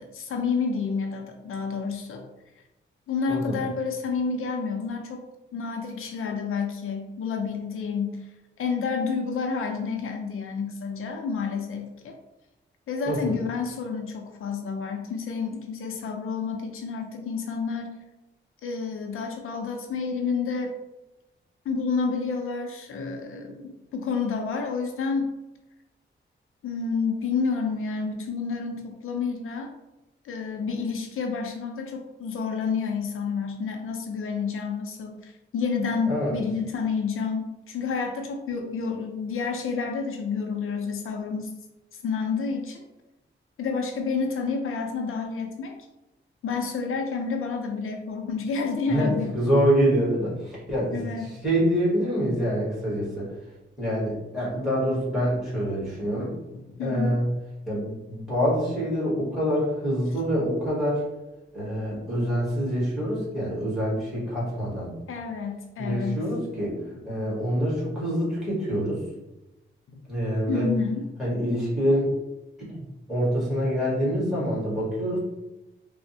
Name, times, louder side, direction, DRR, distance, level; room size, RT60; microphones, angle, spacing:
voice 1, 0.0-2.2 3.1-5.2 5.5-8.2 8.6-12.1 12.9-18.0 18.6-20.7 21.7-25.3 26.6-29.7 30.2-41.5 42.0-42.8 43.6-45.8 46.4-49.3 50.9-51.3 56.7-57.2 65.1-66.2 69.9-70.0 70.5-71.1, left 5 dB, 85° left, 3 dB, 0.4 m, -29 dB
voice 2, 3.3-3.6 13.1-13.4 36.1-36.4 48.9-53.3 53.8-56.3 56.8-57.2 57.7-61.0 61.5-64.9 65.8-66.8 67.0-69.0 70.1-70.7 71.2-72.1 72.7-75.2, equal, ahead, -8 dB, 1.5 m, -26 dB
3.3 x 2.0 x 2.7 m, 0.98 s
wide cardioid pair, 125°, 21 cm